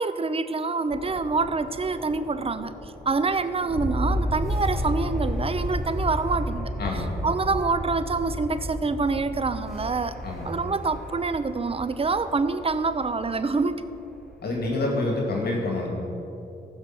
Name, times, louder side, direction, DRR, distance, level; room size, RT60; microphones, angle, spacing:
voice 1, 0.0-2.7 3.1-6.7 7.2-10.2 10.4-13.8, right 4 dB, 30° right, 12 dB, 0.7 m, -26 dB
sound 1, 0.9-14.8, equal, ahead, 2.0 m, -33 dB
voice 2, 6.8-7.2 10.2-10.5 14.4-15.9, left 2 dB, 55° left, -2 dB, 2.3 m, -27 dB
15.0 x 6.0 x 6.0 m, 2.9 s
supercardioid pair, 55°, 19 cm